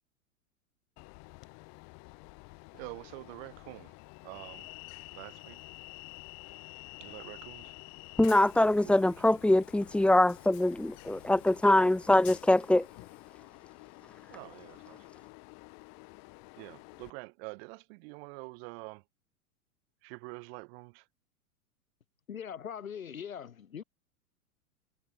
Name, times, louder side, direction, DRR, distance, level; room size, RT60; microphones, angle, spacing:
Train, 1.0-17.1, left 32 dB, 40° left, 4.2 m, -50 dB
voice 1, 2.7-3.9 4.2-4.7 5.2-5.6 7.0-7.7 8.8-9.1 14.3-15.0 16.6-19.0 20.0-21.0, right 30 dB, 45° right, 7.6 m, -46 dB
voice 2, 8.2-12.9, left 1 dB, 5° left, 1.3 m, -24 dB
voice 3, 22.3-23.8, left 8 dB, 65° left, 5.4 m, -41 dB
figure-of-eight pair, 95°, 43 cm